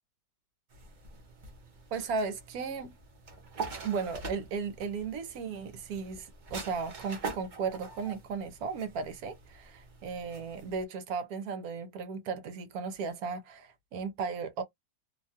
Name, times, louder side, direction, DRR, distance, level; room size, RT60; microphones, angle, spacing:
sound 1, 0.7-10.8, right 4 dB, 45° right, 0.6 m, -44 dB
voice 1, 1.9-2.9 3.8-14.6, right 5 dB, 70° right, 1.1 m, -35 dB
2.9 x 2.2 x 2.7 m
omnidirectional pair, 1.7 m